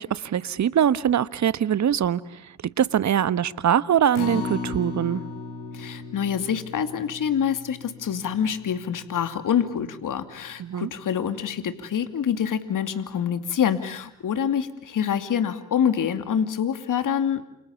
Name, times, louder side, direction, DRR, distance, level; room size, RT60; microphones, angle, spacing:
voice 1, 0.0-5.2 10.6-10.9, right 9 dB, 45° right, 17 dB, 1.3 m, -23 dB
Acoustic guitar, 4.1-10.4 10.8-10.9 11.4-11.5, left 3 dB, 80° left, 4.6 m, -37 dB
voice 2, 5.7-17.4, left 8 dB, 50° left, 10 dB, 2.6 m, -26 dB
29.0 x 28.0 x 7.1 m, 0.79 s
hypercardioid pair, 60°, 40 cm